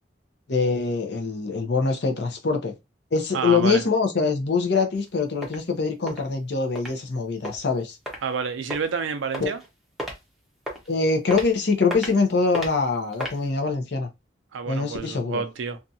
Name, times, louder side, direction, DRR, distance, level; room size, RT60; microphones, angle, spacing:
voice 1, 0.5-2.7 3.1-8.0 9.4-9.5 10.9-14.1 14.7-15.4, left 4 dB, 60° left, 0.6 m, -24 dB
voice 2, 3.3-3.8 8.2-9.6 14.5-15.8, right 5 dB, 80° right, 0.4 m, -29 dB
sound 1, 4.9-5.0 5.4-5.6 6.1-6.2 6.7-6.9 7.4-7.6 8.0-8.2 8.7-8.9 9.3-9.7 10.0-10.2 10.7-10.9 11.3-11.5 11.9-12.1 12.5-12.7 13.1-13.4, equal, ahead, 0.6 m, -32 dB
2.6 x 2.3 x 2.6 m
head